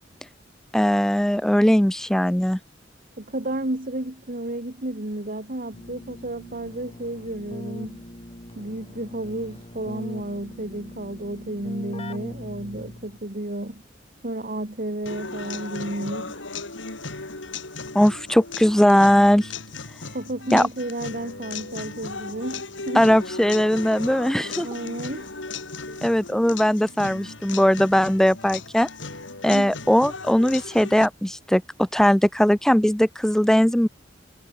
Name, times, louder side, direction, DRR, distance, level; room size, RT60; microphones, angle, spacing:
voice 1, 0.7-2.6 17.9-19.5 20.5-20.7 23.0-24.7 26.0-28.9 29.4-33.9, equal, 5° left, 0.4 m, -19 dB
voice 2, 3.2-8.0 8.6-13.8 14.2-16.4 20.1-23.1 24.6-25.3 25.8-26.1 29.5-29.7, right 1 dB, 50° right, 2.3 m, -32 dB
Keyboard (musical), 5.7-13.3, left 1 dB, 35° left, 2.5 m, -40 dB
sound 1, 15.1-31.1, left 4 dB, 90° left, 4.6 m, -36 dB
head